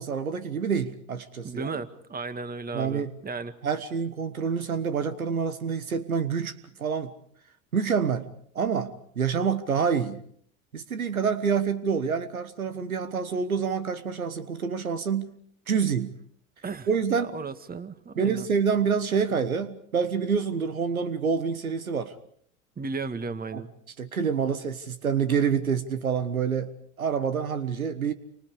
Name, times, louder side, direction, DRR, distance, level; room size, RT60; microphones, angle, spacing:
voice 1, 0.0-1.7 2.7-3.2 3.6-7.1 7.7-8.3 8.5-10.2 10.7-15.3 15.7-16.1 16.9-17.3 18.2-22.1 23.5-23.6 24.0-26.7 27.0-28.1, right 6 dB, 90° right, 13 dB, 1.3 m, -27 dB
voice 2, 1.4-3.6 16.6-18.5 22.8-23.7, right 4 dB, 20° right, 10 dB, 1.9 m, -35 dB
29.0 x 25.0 x 4.9 m, 0.63 s
figure-of-eight pair, 70°, 41 cm